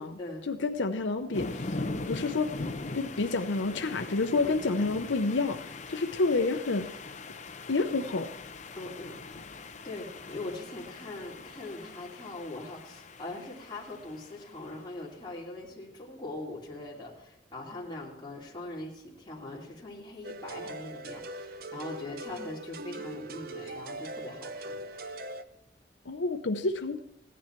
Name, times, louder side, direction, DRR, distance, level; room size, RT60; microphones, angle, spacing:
voice 1, 0.5-1.8 2.1-2.5 2.9-6.9 7.7-8.3 26.1-27.0, left 3 dB, 85° left, 7 dB, 0.7 m, -29 dB
sound 1, 1.3-14.8, left 3 dB, 40° left, 0.7 m, -41 dB
voice 2, 4.4-4.8 8.8-25.2, left 2 dB, 25° left, -3 dB, 2.9 m, -42 dB
sound 2, 20.2-25.4, right 2 dB, 50° right, 0.6 m, -41 dB
15.5 x 10.5 x 4.5 m, 0.81 s
head